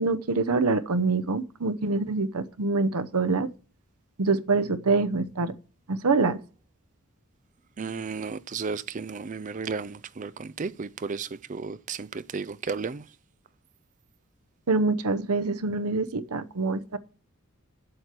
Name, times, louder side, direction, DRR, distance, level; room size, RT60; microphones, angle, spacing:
voice 1, 0.0-3.5 4.2-5.5 5.9-6.4 14.7-17.0, right 3 dB, 85° right, 0.8 m, -25 dB
voice 2, 7.8-13.2, right 5 dB, 35° right, 0.4 m, -34 dB
8.2 x 7.8 x 5.9 m
head